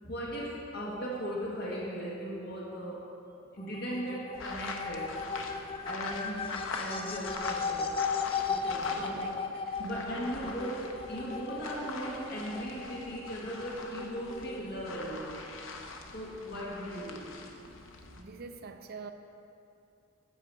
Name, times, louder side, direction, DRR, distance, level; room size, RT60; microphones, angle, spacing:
voice 1, 0.0-3.2 3.5-5.2 5.8-8.0 8.5-9.3 9.8-15.5 16.1-17.3, equal, 55° left, -4 dB, 1.5 m, -38 dB
sound 1, 3.6-14.9, left 5 dB, 30° left, 0.4 m, -37 dB
sound 2, 4.3-9.4 9.7-18.2, left 3 dB, 80° left, 0.7 m, -43 dB
voice 2, 8.4-9.8 10.1-10.3 18.0-19.1, right 4 dB, 50° right, 6 dB, 0.5 m, -47 dB
8.5 x 4.9 x 6.8 m, 2.6 s
head